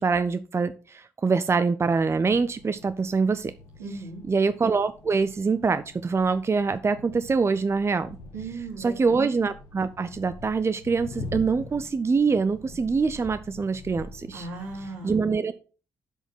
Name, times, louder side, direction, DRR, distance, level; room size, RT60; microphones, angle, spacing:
voice 1, 0.0-3.5 4.3-8.2 8.8-14.5 15.0-15.5, right 4 dB, 30° right, 12 dB, 0.6 m, -24 dB
sound 1, 1.8-15.0, left 2 dB, 70° left, 1.9 m, -44 dB
voice 2, 3.8-4.2 8.3-9.1 14.3-15.2, right 3 dB, 80° right, -1 dB, 3.0 m, -37 dB
7.7 x 5.1 x 6.1 m, 0.36 s
hypercardioid pair, 40°, 9 cm